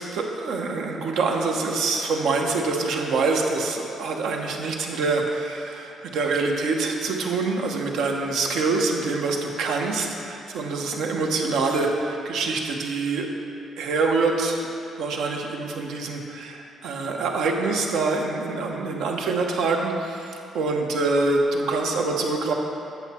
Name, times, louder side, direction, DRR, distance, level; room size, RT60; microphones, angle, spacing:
voice 1, 0.0-13.3 13.8-14.7 15.0-22.5, right 3 dB, 85° right, 1 dB, 1.0 m, -25 dB
8.0 x 7.0 x 4.4 m, 2.5 s
cardioid pair, 90°, 0 cm